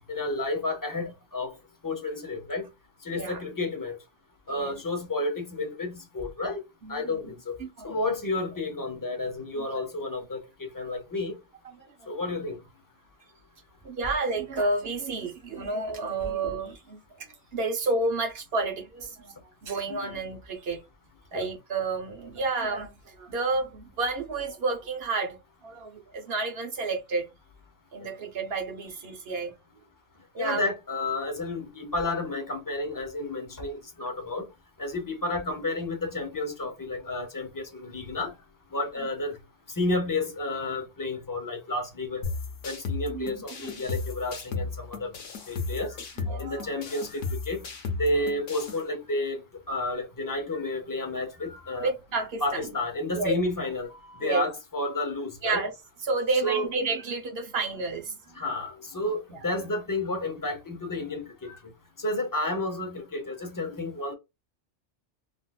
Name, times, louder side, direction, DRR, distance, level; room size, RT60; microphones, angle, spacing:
voice 1, 0.1-1.5 1.8-2.7 3.0-4.0 4.5-6.6 6.9-7.6 7.8-11.4 12.1-12.6 19.9-20.1 21.3-21.4 28.0-28.1 30.4-34.5 34.8-38.3 38.7-39.4 39.8-42.2 42.6-45.1 45.5-46.0 46.4-47.6 48.0-49.4 49.7-51.9 52.4-55.6 56.4-56.7 58.3-61.6 62.0-64.1, left 2 dB, 30° left, 0.4 m, -31 dB
voice 2, 4.5-4.8 6.8-6.9 7.6-8.0 9.6-9.8 11.8-11.9 13.8-19.3 19.6-20.8 21.3-27.2 27.9-29.8 30.3-30.6 43.1-43.9 46.3-46.7 51.8-52.6 53.1-53.3 54.2-54.4 55.4-55.7 56.0-58.2 59.3-59.4, right 3 dB, 60° right, 0.9 m, -31 dB
sound 1, 42.2-48.8, left 4 dB, 85° left, 1.1 m, -35 dB
3.7 x 2.4 x 2.2 m
omnidirectional pair, 1.2 m